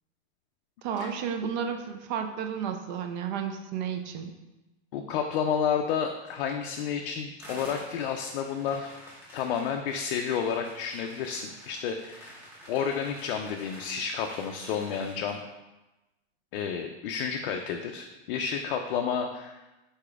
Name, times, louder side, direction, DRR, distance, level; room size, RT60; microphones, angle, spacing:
voice 1, 0.8-4.3, right 7 dB, 45° right, 6 dB, 0.5 m, -32 dB
voice 2, 4.9-8.9 9.3-12.3 12.7-15.4 16.5-19.6, left 7 dB, 55° left, 3 dB, 0.4 m, -31 dB
sound 1, 7.4-15.4, equal, 5° right, 0.7 m, -49 dB
4.9 x 4.2 x 2.4 m, 1.0 s
supercardioid pair, 155°, 33 cm